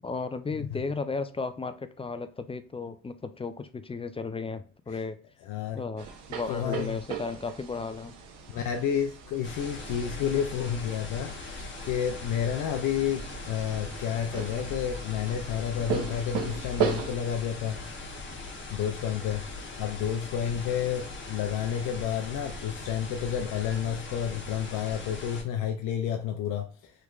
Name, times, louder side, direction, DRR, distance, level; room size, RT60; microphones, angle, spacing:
voice 1, 0.0-5.2 5.7-8.1, left 4 dB, 20° left, 0.4 m, -34 dB
voice 2, 5.4-5.8 6.5-7.0 8.5-17.9 18.7-19.5 19.8-26.9, left 9 dB, 90° left, 0.5 m, -30 dB
sound 1, 6.0-17.2, right 7 dB, 85° right, 0.9 m, -37 dB
sound 2, 9.4-25.4, left 3 dB, 40° left, 1.1 m, -40 dB
3.3 x 3.0 x 2.4 m
cardioid pair, 90°, 30 cm